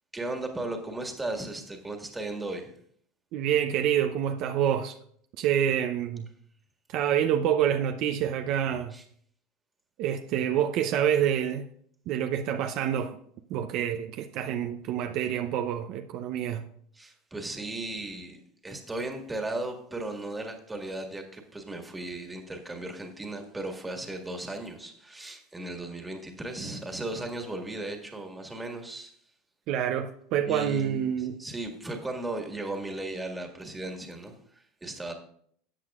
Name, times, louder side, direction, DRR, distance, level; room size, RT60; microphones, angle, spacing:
voice 1, 0.1-2.7 8.9-9.0 17.0-29.1 30.4-35.1, right 2 dB, 10° right, 1.8 m, -36 dB
voice 2, 3.3-5.0 5.4-6.3 6.9-8.9 10.0-11.6 12.1-13.2 13.5-16.6 29.7-31.4, right 9 dB, 55° right, 0.6 m, -27 dB
13.5 x 8.0 x 2.4 m
supercardioid pair, 110°, 0 cm